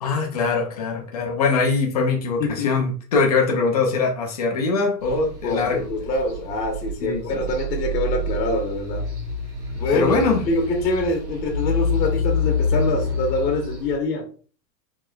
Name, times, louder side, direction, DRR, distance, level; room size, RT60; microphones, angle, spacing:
voice 1, 0.0-5.8 7.0-7.2 9.9-10.4, left 4 dB, 25° left, 0.4 m, -22 dB
voice 2, 2.4-2.8 5.4-9.1 9.7-10.2 10.5-14.3, left 2 dB, 90° left, 1.2 m, -25 dB
sound 1, 5.0-14.0, left 2 dB, 15° right, 1.6 m, -27 dB
4.8 x 2.9 x 2.2 m
supercardioid pair, 165°, 49 cm